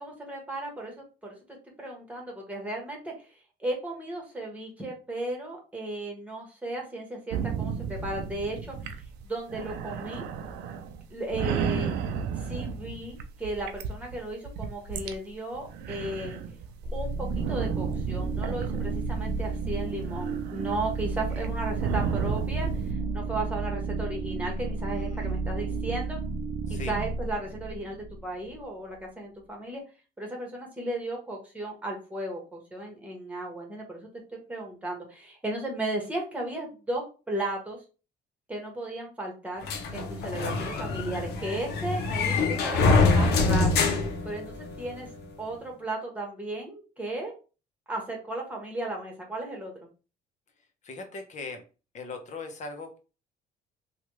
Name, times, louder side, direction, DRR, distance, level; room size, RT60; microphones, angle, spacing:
voice 1, 0.0-1.3 1.8-10.3 11.1-11.9 12.3-16.4 16.9-26.2 26.7-29.8 30.2-34.1 34.5-37.8 38.5-39.6 39.9-42.3 42.6-43.8 44.2-45.1 45.4-47.3 47.9-49.7, right 1 dB, 10° right, 0 dB, 1.4 m, -35 dB
sound 1, 7.3-15.2 15.5-22.9, right 6 dB, 85° right, 0.5 m, -34 dB
sound 2, 16.8-28.6, right 4 dB, 35° right, 0.4 m, -32 dB
voice 2, 24.8-25.4 26.7-27.0 40.3-40.6 50.8-51.6 51.9-53.0, left 3 dB, 45° left, 5 dB, 0.9 m, -40 dB
sound 3, 39.7-44.9, left 3 dB, 75° left, 0.7 m, -25 dB
3.1 x 2.4 x 3.1 m, 0.33 s
cardioid pair, 110°, 17 cm